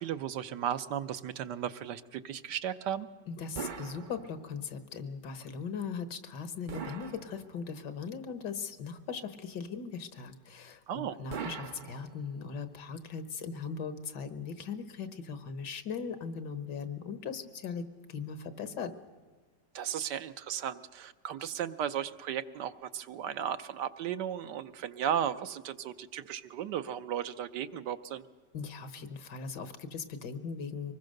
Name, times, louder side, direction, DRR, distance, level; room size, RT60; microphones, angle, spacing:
voice 1, 0.0-3.1 10.9-11.2 19.7-28.2, right 9 dB, 80° right, 11 dB, 1.4 m, -35 dB
voice 2, 3.3-18.9 28.5-30.9, left 6 dB, 75° left, 12 dB, 1.9 m, -39 dB
sound 1, 3.6-4.7 6.7-7.9 11.3-12.6, right 6 dB, 55° right, 0.5 m, -42 dB
24.5 x 20.0 x 6.5 m, 1.4 s
omnidirectional pair, 1.9 m